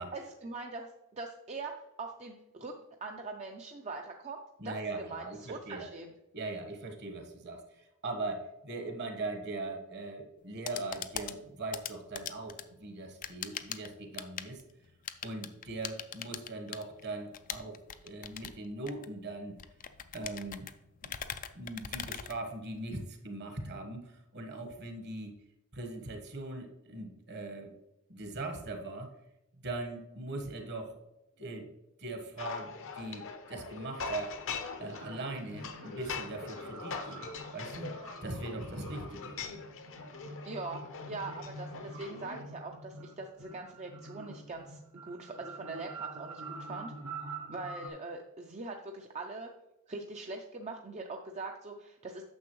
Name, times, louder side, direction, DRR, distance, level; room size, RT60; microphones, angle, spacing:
voice 1, 0.1-2.7 3.0-4.4 4.6-6.1 40.5-46.9 47.5-49.5 49.9-52.3, right 3 dB, 30° right, 2 dB, 0.6 m, -42 dB
voice 2, 4.6-5.9 6.3-14.6 15.2-19.6 20.1-20.7 21.0-21.1 21.5-25.3 25.7-27.7 28.1-29.1 29.6-31.0 31.4-31.7 32.0-34.4 34.8-37.9 38.2-39.3, right 2 dB, 50° right, 5 dB, 1.3 m, -40 dB
sound 1, 10.4-23.0, left 9 dB, 35° left, 0.4 m, -43 dB
sound 2, 32.4-42.4, left 5 dB, 60° left, 0.9 m, -42 dB
sound 3, 34.9-47.9, right 2 dB, 90° right, 1.4 m, -47 dB
9.5 x 6.8 x 3.1 m, 0.92 s
head